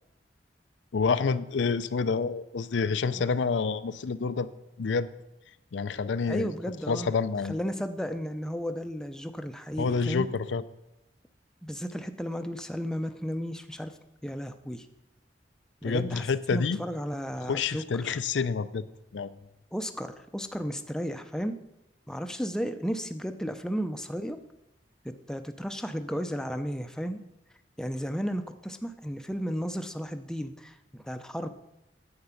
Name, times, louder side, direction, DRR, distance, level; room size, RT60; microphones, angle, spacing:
voice 1, 0.9-4.5 4.8-5.1 5.7-6.5 6.9-7.6 9.8-10.6 15.8-16.8 17.5-18.9 19.1-19.3, left 5 dB, 80° left, 13 dB, 0.5 m, -28 dB
voice 2, 6.3-7.1 7.5-10.3 11.6-13.9 14.2-14.9 15.8-16.2 16.5-18.2 19.7-21.6 22.1-24.4 25.0-27.2 27.8-31.5, equal, 5° left, 7 dB, 0.5 m, -34 dB
9.7 x 7.9 x 5.8 m, 0.90 s
head